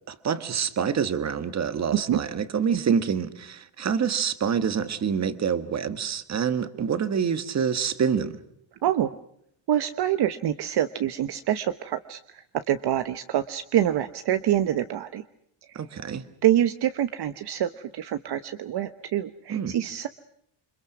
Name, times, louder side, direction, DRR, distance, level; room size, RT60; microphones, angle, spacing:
voice 1, 0.1-8.4 15.7-16.2 19.5-19.8, right 7 dB, 35° right, 1.6 m, -26 dB
voice 2, 8.8-9.2 9.7-15.2 16.4-20.1, right 11 dB, 55° right, 1.1 m, -26 dB
28.5 x 26.0 x 6.1 m
cardioid pair, 180°, 47 cm